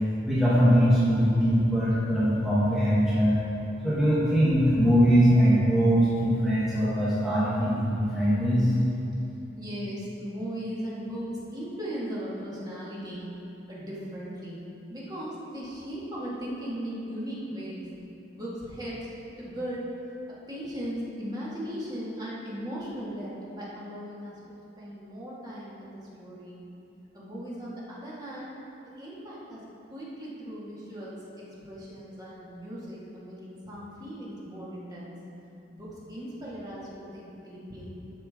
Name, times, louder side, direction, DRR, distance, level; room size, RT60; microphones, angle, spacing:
voice 1, 0.2-3.4 3.8-8.7, equal, ahead, -11 dB, 1.3 m, -22 dB
voice 2, 9.5-13.3 13.7-17.9 18.3-19.1 19.4-19.8 20.5-26.6 27.1-28.5 29.0-29.6 29.9-31.2 31.6-35.2 35.7-38.0, equal, 20° right, -7 dB, 1.9 m, -38 dB
12.0 x 5.5 x 3.6 m, 3.0 s
head